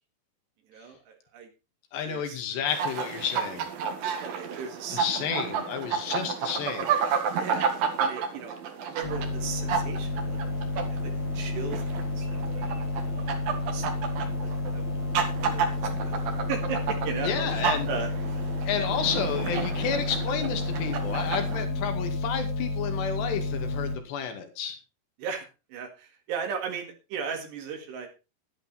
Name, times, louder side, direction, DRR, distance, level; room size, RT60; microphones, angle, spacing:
voice 1, 0.7-1.5 2.1-2.4 4.0-5.0 7.4-7.7 8.0-8.5 8.9-10.4 10.9-13.8 14.2-15.1 15.4-16.2 16.5-18.4 21.7-21.8 25.2-28.1, right 6 dB, 80° right, 3 dB, 4.1 m, -37 dB
voice 2, 1.9-3.7 4.9-6.9 17.2-17.9 18.6-24.8, left 7 dB, 75° left, 6 dB, 4.3 m, -31 dB
sound 1, 2.7-21.7, right 6 dB, 60° right, 3.4 m, -32 dB
sound 2, 9.0-24.0, left 2 dB, 45° left, 1.8 m, -31 dB
11.5 x 11.0 x 4.3 m, 0.30 s
omnidirectional pair, 4.9 m